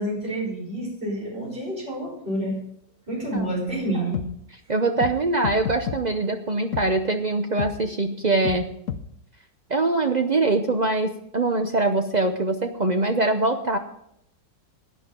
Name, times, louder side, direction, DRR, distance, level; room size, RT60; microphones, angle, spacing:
voice 1, 0.0-2.6 3.1-4.3, right 1 dB, 35° right, -3 dB, 4.3 m, -28 dB
voice 2, 3.1-3.5 4.7-8.7 9.7-13.8, right 2 dB, 65° right, 6 dB, 0.4 m, -23 dB
sound 1, 3.4-3.5 4.1-4.3 5.0-5.1 5.4-6.0 6.7-6.9 7.6-7.7 8.4-8.6 8.9-9.0, left 8 dB, 60° left, 1.1 m, -29 dB
16.5 x 9.8 x 3.7 m, 0.72 s
omnidirectional pair, 1.9 m